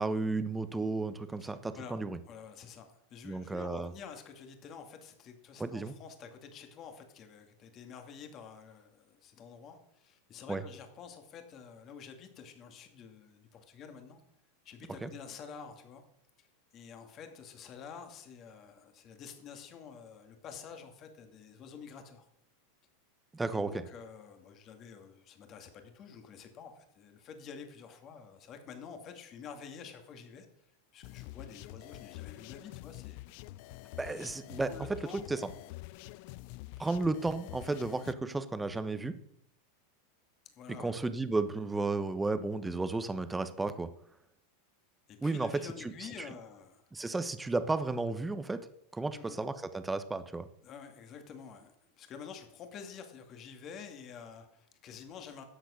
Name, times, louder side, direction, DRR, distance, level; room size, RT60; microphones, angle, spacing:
voice 1, 0.0-2.2 3.2-3.9 5.6-5.9 10.5-10.6 15.0-15.1 23.3-23.7 34.0-34.7 35.3-35.5 36.8-39.2 40.8-43.9 45.2-46.1 46.9-50.5, right 3 dB, 10° right, 12 dB, 1.0 m, -33 dB
voice 2, 1.4-2.0 2.3-14.2 14.6-16.0 16.4-16.5 16.7-22.2 23.6-30.5 30.9-33.2 34.7-35.2 37.7-37.9 40.6-41.0 45.1-46.8 49.1-49.4 50.6-55.4, left 6 dB, 35° left, 5 dB, 2.3 m, -49 dB
sound 1, 31.0-38.1, left 18 dB, 60° left, 0.4 m, -47 dB
12.5 x 8.0 x 6.5 m, 0.76 s
supercardioid pair, 120°, 0 cm